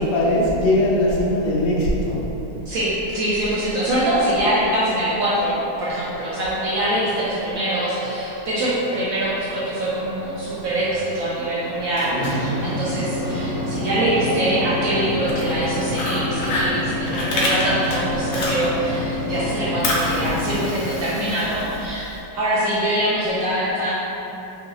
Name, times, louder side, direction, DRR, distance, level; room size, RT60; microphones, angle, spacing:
voice 1, 0.0-2.2, left 1 dB, 85° left, -4 dB, 1.3 m, -20 dB
voice 2, 2.7-23.9, right 1 dB, 70° right, -8 dB, 0.8 m, -24 dB
sound 1, 3.8-18.8, right 1 dB, 90° right, 1.3 m, -39 dB
sound 2, 11.7-20.6, left 1 dB, 45° right, 0.9 m, -27 dB
Fire, 15.1-19.0 19.3-22.1, left 1 dB, 70° left, 1.1 m, -27 dB
3.8 x 2.6 x 2.7 m, 3.0 s
omnidirectional pair, 1.9 m